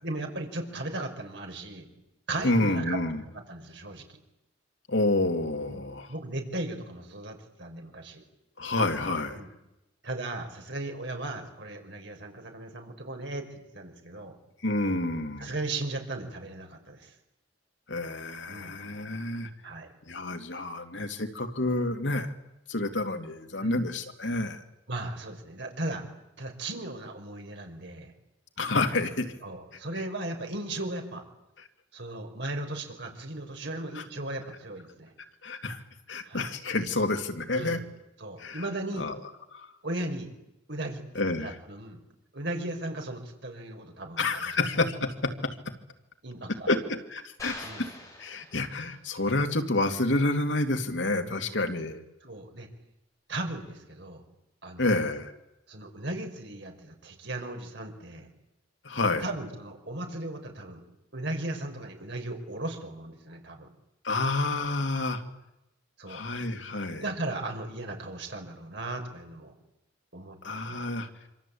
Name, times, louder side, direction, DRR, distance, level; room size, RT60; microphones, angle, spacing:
voice 1, 0.0-1.9 2.3-4.2 5.7-5.8 6.1-8.2 9.3-9.5 10.0-14.4 15.4-17.1 18.5-18.8 19.6-19.9 23.6-23.8 24.9-26.0 26.4-28.1 29.4-31.2 31.9-35.1 36.3-36.5 37.5-37.8 38.2-39.1 39.8-40.3 40.7-41.0 41.4-42.0 42.3-44.5 46.2-46.7 47.6-47.9 51.3-51.4 52.2-52.7 53.3-54.3 54.6-54.8 55.7-58.3 59.2-60.8 61.1-63.7 66.0-66.2 67.0-69.5 70.1-70.4 70.7-70.8, right 2 dB, 70° right, 3 dB, 5.3 m, -36 dB
voice 2, 2.4-3.2 4.9-6.1 8.6-9.4 14.6-15.5 17.9-19.5 20.1-22.3 22.7-24.6 28.6-29.3 33.9-34.0 35.4-37.8 38.4-38.6 39.0-39.2 39.5-39.7 41.1-41.6 44.2-45.6 46.7-47.9 48.2-52.0 54.8-55.3 58.8-59.3 64.0-65.2 66.1-67.0 70.4-71.1, left 2 dB, 75° left, 5 dB, 2.6 m, -29 dB
sound 1, 47.4-49.1, left 1 dB, 20° left, 6.9 m, -44 dB
26.5 x 26.0 x 8.6 m, 0.92 s
head